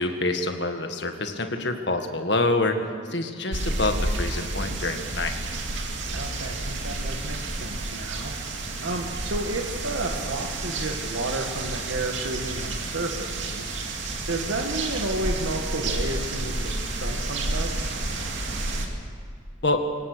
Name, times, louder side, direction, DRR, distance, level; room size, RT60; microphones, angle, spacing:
voice 1, 0.0-2.8 3.1-5.4 19.6-19.8, left 2 dB, 60° left, 6 dB, 1.8 m, -26 dB
sound 1, 3.5-18.9, right 2 dB, 70° right, 2.5 m, -30 dB
voice 2, 6.1-8.3 8.8-13.7 14.2-17.7, right 2 dB, 85° right, 2 dB, 1.7 m, -32 dB
24.0 x 18.0 x 6.8 m, 2.2 s
head